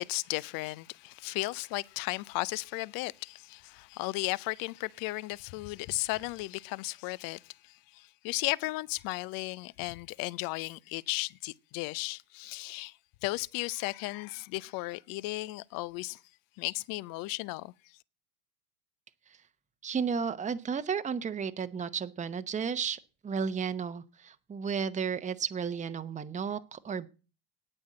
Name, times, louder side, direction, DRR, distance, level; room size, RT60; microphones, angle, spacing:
voice 1, 0.0-16.2 16.6-18.0, left 21 dB, 50° left, 0.7 m, -35 dB
voice 2, 19.8-27.1, right 6 dB, 15° right, 0.9 m, -33 dB
9.8 x 8.9 x 7.6 m
hypercardioid pair, 100°, 43 cm